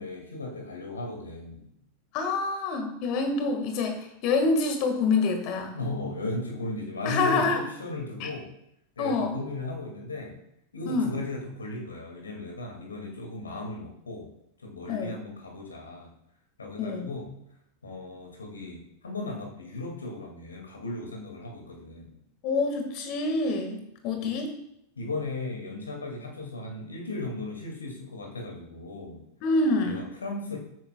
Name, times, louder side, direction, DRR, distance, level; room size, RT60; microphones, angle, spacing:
voice 1, 0.0-1.7 5.7-8.5 9.0-10.4 10.7-14.3 14.6-16.1 16.6-17.3 17.8-22.1 24.2-24.3 25.0-29.2 29.8-30.6, left 2 dB, 75° left, 0 dB, 2.4 m, -36 dB
voice 2, 2.1-5.7 7.0-7.6 8.2-8.3 9.0-9.4 10.9-11.1 14.9-15.1 16.8-17.1 22.4-24.5 29.4-30.1, left 3 dB, 40° left, 4 dB, 1.9 m, -26 dB
13.5 x 8.9 x 2.4 m, 0.78 s
figure-of-eight pair, 90°, 0 cm